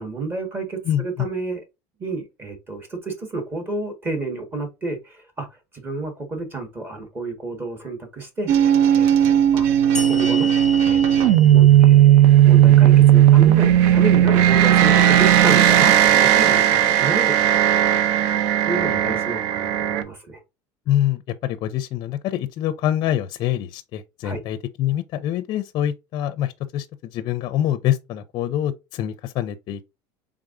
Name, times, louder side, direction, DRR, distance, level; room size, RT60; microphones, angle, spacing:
voice 1, 0.0-1.6 2.0-9.7 10.1-10.5 10.8-17.6 18.7-20.4 24.2-24.4, right 3 dB, 20° right, 1.5 m, -30 dB
sound 1, 8.5-20.0, right 11 dB, 75° right, 0.7 m, -15 dB
sound 2, 9.9-13.3, left 3 dB, 5° left, 0.8 m, -34 dB
voice 2, 20.9-26.9 27.1-29.9, left 11 dB, 45° left, 0.5 m, -25 dB
4.7 x 3.6 x 2.5 m
cardioid pair, 140°, 10 cm